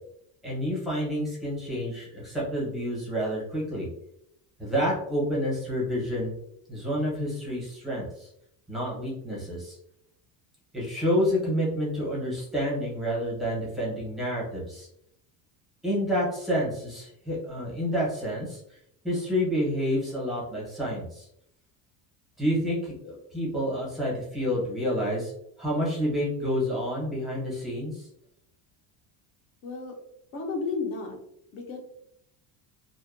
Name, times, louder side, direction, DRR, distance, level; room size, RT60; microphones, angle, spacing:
voice 1, 0.4-3.9 4.6-6.3 6.7-8.3 8.7-9.8 10.7-14.9 15.8-18.8 19.0-21.3 22.4-25.3 25.6-28.1, equal, ahead, -6 dB, 0.7 m, -29 dB
voice 2, 29.6-29.9 30.3-31.2 31.5-31.8, left 4 dB, 30° left, 3 dB, 0.4 m, -32 dB
2.6 x 2.2 x 2.4 m, 0.74 s
cardioid pair, 165°, 45 cm